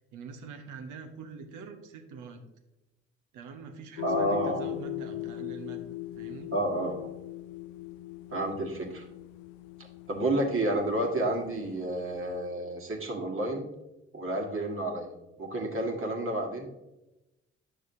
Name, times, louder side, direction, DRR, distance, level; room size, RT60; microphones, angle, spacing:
voice 1, 0.1-2.4 3.3-5.8 6.2-6.5, right 5 dB, 65° right, 6 dB, 1.1 m, -44 dB
sound 1, 4.0-12.5, left 15 dB, 70° left, 0.5 m, -40 dB
voice 2, 4.0-4.6 6.5-7.1 8.3-9.0 10.1-13.7 14.1-15.1 15.4-16.7, right 1 dB, 40° right, 0 dB, 1.8 m, -30 dB
10.0 x 6.2 x 2.7 m, 0.96 s
hypercardioid pair, 45°, 33 cm